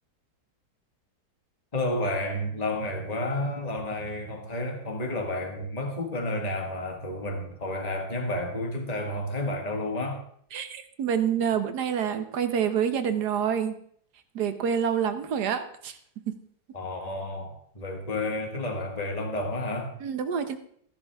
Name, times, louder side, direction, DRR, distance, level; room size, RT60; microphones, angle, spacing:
voice 1, 1.7-10.2 16.7-20.0, left 1 dB, 25° left, 3 dB, 1.8 m, -31 dB
voice 2, 10.5-13.7 14.3-16.0 16.3-16.4 20.0-20.6, right 8 dB, 80° right, 9 dB, 1.6 m, -27 dB
15.0 x 11.0 x 3.5 m, 0.63 s
omnidirectional pair, 1.7 m